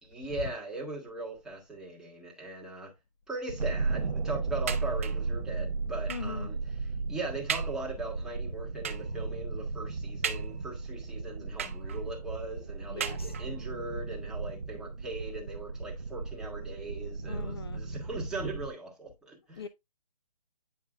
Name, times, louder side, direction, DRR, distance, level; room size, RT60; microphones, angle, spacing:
voice 1, 0.0-2.9 3.3-19.7, right 2 dB, 5° right, 1.5 m, -39 dB
sound 1, 3.5-18.7, right 3 dB, 75° right, 1.3 m, -35 dB
sound 2, 4.7-5.3 6.1-6.4 6.9-7.0 7.5-7.9 8.8-9.2 10.2-10.9 11.6-12.2 13.0-13.7 14.5-14.6 14.9-15.0, right 8 dB, 20° right, 0.4 m, -37 dB
voice 2, 6.1-6.5 12.9-13.3 17.3-17.8 19.6-19.7, left 6 dB, 40° left, 0.4 m, -40 dB
9.5 x 5.3 x 2.4 m
hypercardioid pair, 155°, 21 cm